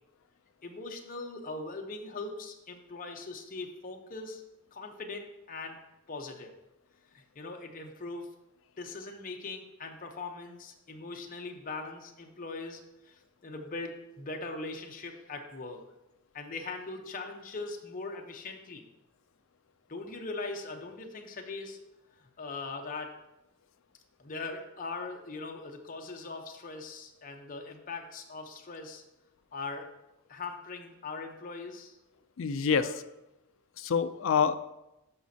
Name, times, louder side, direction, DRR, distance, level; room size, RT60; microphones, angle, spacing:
voice 1, 0.6-4.4 4.7-5.8 6.1-6.6 7.1-8.3 8.8-15.8 16.3-18.8 19.9-21.8 22.2-23.2 24.2-29.0 29.5-29.9 30.3-32.0 32.8-32.9, left 3 dB, 40° left, 2 dB, 0.9 m, -40 dB
voice 2, 32.4-32.8 33.8-34.5, left 6 dB, 65° left, 12 dB, 0.4 m, -26 dB
12.5 x 5.2 x 2.8 m, 0.93 s
head